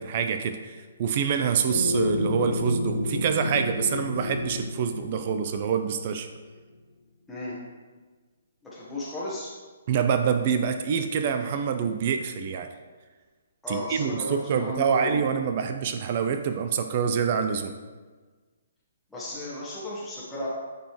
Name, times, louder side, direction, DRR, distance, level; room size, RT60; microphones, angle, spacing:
voice 1, 0.0-6.3 9.9-12.7 13.7-17.7, right 7 dB, 40° right, 7 dB, 0.4 m, -26 dB
sound 1, 1.7-6.3, left 2 dB, 70° left, 0.7 m, -30 dB
voice 2, 8.7-9.5 13.6-15.3 19.1-20.5, left 1 dB, 5° left, -10 dB, 1.3 m, -34 dB
9.7 x 4.0 x 3.2 m, 1.4 s
figure-of-eight pair, 130°, 0 cm